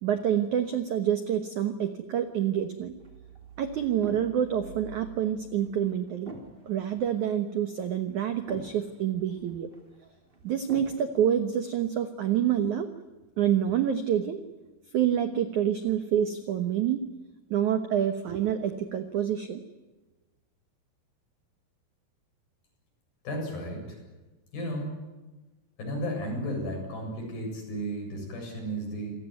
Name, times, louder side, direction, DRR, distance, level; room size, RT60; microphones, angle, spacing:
voice 1, 0.0-2.9 3.6-6.3 6.6-9.7 10.4-12.9 13.4-14.4 14.9-17.1 17.5-19.6, right 9 dB, 80° right, 8 dB, 1.7 m, -27 dB
sound 1, 3.0-11.0, right 1 dB, 15° right, 2.3 m, -48 dB
voice 2, 23.2-24.0 24.5-25.0 25.8-29.1, equal, 50° left, 1 dB, 9.4 m, -34 dB
27.5 x 18.0 x 9.5 m, 1.1 s
omnidirectional pair, 5.4 m